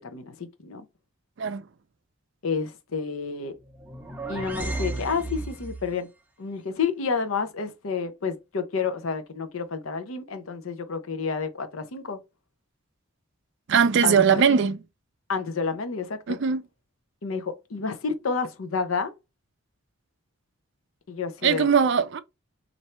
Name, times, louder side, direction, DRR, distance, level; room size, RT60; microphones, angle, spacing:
voice 1, 0.0-0.8 2.4-3.5 4.3-6.1 6.4-12.2 14.0-14.6 15.3-16.4 17.2-19.1 21.1-21.7, left 5 dB, 75° left, 0.7 m, -30 dB
sound 1, 3.6-6.0, right 2 dB, 10° right, 0.6 m, -34 dB
voice 2, 13.7-14.8 16.3-16.6 21.4-22.2, right 6 dB, 55° right, 0.4 m, -20 dB
3.2 x 2.6 x 4.2 m
head